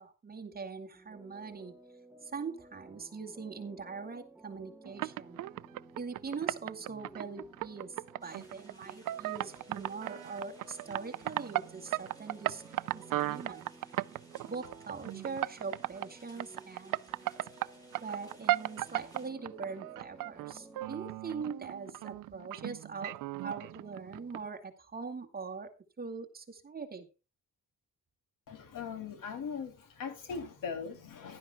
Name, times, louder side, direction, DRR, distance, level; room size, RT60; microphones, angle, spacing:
voice 1, 0.0-1.8 2.2-5.4 6.0-8.0 8.2-12.6 12.9-13.7 14.5-17.0 18.0-25.7 26.0-27.1, right 5 dB, 30° right, 2.1 m, -42 dB
sound 1, 0.9-20.9, right 1 dB, 5° right, 1.0 m, -56 dB
sound 2, 4.8-16.1 16.4-17.7 17.9-24.4, right 15 dB, 75° right, 0.5 m, -36 dB
sound 3, 8.2-19.3, right 1 dB, 10° left, 4.8 m, -62 dB
voice 2, 28.5-31.4, left 6 dB, 75° left, 3.0 m, -40 dB
15.5 x 12.0 x 2.3 m
wide cardioid pair, 145°, 32 cm